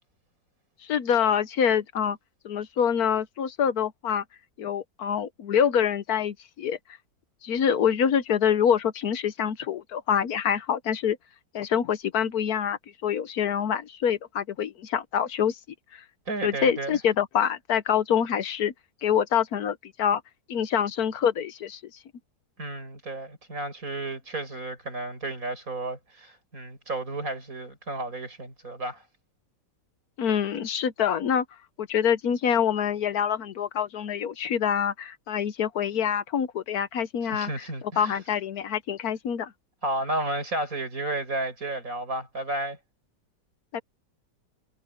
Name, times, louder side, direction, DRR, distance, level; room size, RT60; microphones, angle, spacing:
voice 1, 0.8-2.2 2.4-4.2 4.6-6.8 7.4-11.2 11.5-15.6 15.9-16.0 16.4-18.7 19.0-20.2 20.5-21.8 30.2-31.4 31.8-37.6 38.0-39.5 43.7-43.8, left 8 dB, 65° left, 1.3 m, -26 dB
voice 2, 16.3-17.0 22.6-29.0 37.3-38.2 39.8-42.8, right 2 dB, 50° right, 6.9 m, -32 dB
omnidirectional pair, 1.8 m